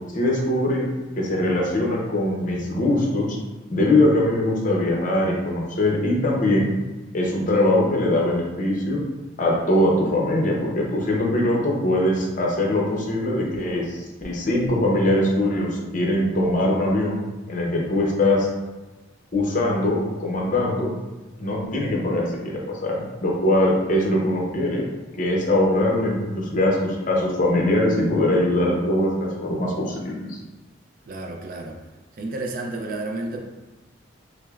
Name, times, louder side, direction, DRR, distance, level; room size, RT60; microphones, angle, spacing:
voice 1, 0.1-0.9 1.1-3.4 3.7-6.7 7.1-9.0 9.4-17.2 17.5-18.5 19.3-20.9 21.4-24.8 25.2-30.4, left 1 dB, 40° left, -2 dB, 0.7 m, -22 dB
voice 2, 31.1-31.8 32.1-33.4, right 2 dB, 45° right, 2 dB, 0.4 m, -31 dB
6.0 x 2.0 x 2.4 m, 1.2 s
head